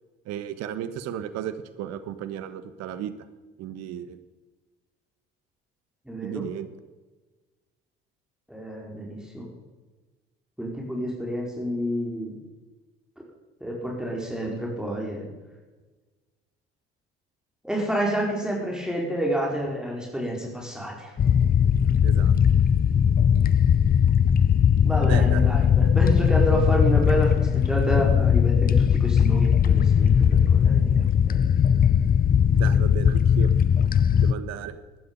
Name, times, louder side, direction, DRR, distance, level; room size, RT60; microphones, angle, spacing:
voice 1, 0.3-3.1 3.6-4.2 6.2-6.7 22.0-22.3 25.0-25.5 32.5-33.5 34.2-34.7, right 10 dB, 60° right, 12 dB, 1.3 m, -34 dB
voice 2, 6.1-6.4 8.5-9.5 10.6-12.4 13.6-15.3 17.6-21.1 24.8-31.5, right 1 dB, ahead, -2 dB, 4.5 m, -29 dB
sound 1, 21.2-34.3, left 8 dB, 30° left, 0.6 m, -19 dB
15.5 x 12.0 x 5.4 m, 1.2 s
hypercardioid pair, 55°, 30 cm